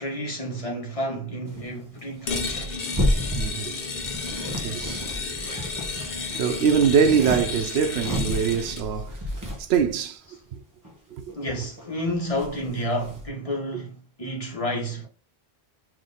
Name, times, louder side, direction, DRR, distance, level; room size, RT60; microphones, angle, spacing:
voice 1, 0.0-2.7 4.5-4.6 11.3-15.1, equal, 35° left, 1.1 m, -30 dB
sound 1, 1.5-9.9 10.5-10.6 10.8-11.8 12.1-13.3, left 1 dB, 20° right, 0.9 m, -32 dB
sound 2, 2.2-8.9, left 4 dB, 65° left, 1.0 m, -32 dB
voice 2, 3.3-3.8 4.6-5.2 6.4-9.2 9.6-10.2 10.5-10.6 11.1-11.3, right 7 dB, 90° right, 0.8 m, -23 dB
3.6 x 2.6 x 3.8 m
omnidirectional pair, 1.0 m